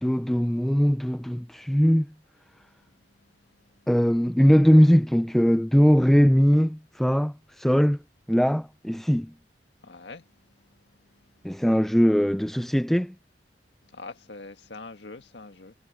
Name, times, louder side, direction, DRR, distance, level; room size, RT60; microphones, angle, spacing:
voice 1, 0.0-2.1 3.9-8.0 8.3-9.3 11.4-13.1, equal, ahead, 0.3 m, -20 dB
voice 2, 9.8-10.2 13.9-15.8, left 3 dB, 75° left, 1.8 m, -43 dB
head